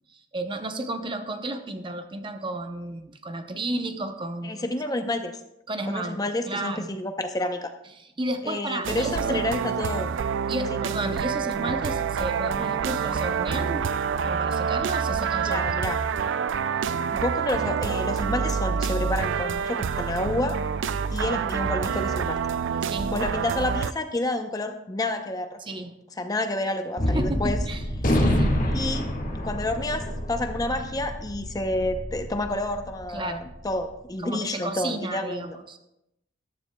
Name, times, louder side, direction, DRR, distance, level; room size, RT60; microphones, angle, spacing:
voice 1, 0.1-4.7 5.7-6.2 6.5-6.9 8.0-9.5 10.5-13.9 14.2-15.6 22.8-23.2 25.6-26.0 27.1-27.8 28.1-28.6 33.1-33.5 34.2-35.8, right 1 dB, 25° right, 7 dB, 0.7 m, -32 dB
voice 2, 4.4-5.3 5.9-7.7 8.4-10.1 15.5-16.0 17.1-20.6 21.1-22.4 23.1-25.6 26.2-27.6 28.7-29.1 29.4-35.6, left 1 dB, 20° left, 7 dB, 0.6 m, -29 dB
sound 1, 8.8-23.9, right 6 dB, 75° right, 0.4 m, -27 dB
Gunshot gunfire, 27.0-33.5, equal, 45° left, 1.7 m, -27 dB
14.0 x 12.0 x 2.2 m, 0.85 s
head